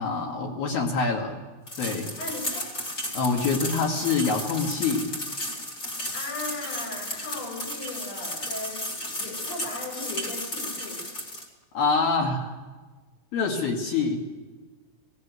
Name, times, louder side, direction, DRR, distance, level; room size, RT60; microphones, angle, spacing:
voice 1, 0.0-1.4 1.8-2.1 3.1-5.1 11.7-12.6 13.3-14.2, left 4 dB, 55° left, 0 dB, 3.5 m, -25 dB
sound 1, 1.7-11.5, left 1 dB, 25° left, 2.1 m, -34 dB
voice 2, 2.2-2.7 6.1-11.0, left 2 dB, 75° left, -4 dB, 8.5 m, -37 dB
19.0 x 15.0 x 9.5 m, 1.3 s
omnidirectional pair, 5.9 m